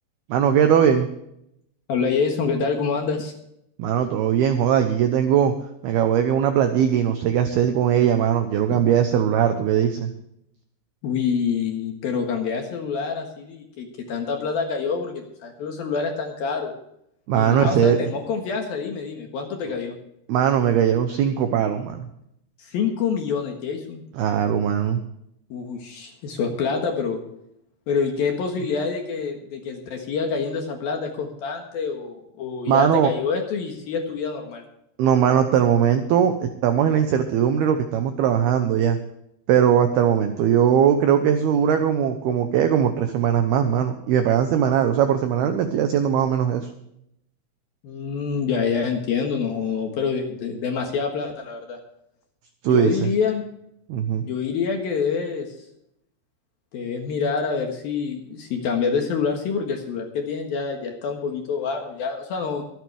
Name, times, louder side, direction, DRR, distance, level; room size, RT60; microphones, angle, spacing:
voice 1, 0.3-1.1 3.8-5.5 5.8-10.1 17.3-18.0 20.3-22.1 24.1-25.0 32.7-33.1 35.0-39.0 39.5-46.7 52.6-52.9 53.9-54.2, right 9 dB, 80° right, 8 dB, 2.2 m, -20 dB
voice 2, 1.9-3.3 11.0-16.7 17.4-20.0 22.6-24.0 25.5-27.2 27.9-34.6 47.8-51.8 52.7-53.4 54.2-55.6 56.7-62.6, left 5 dB, 65° left, 3 dB, 2.7 m, -26 dB
24.5 x 9.4 x 3.4 m, 0.76 s
omnidirectional pair, 5.8 m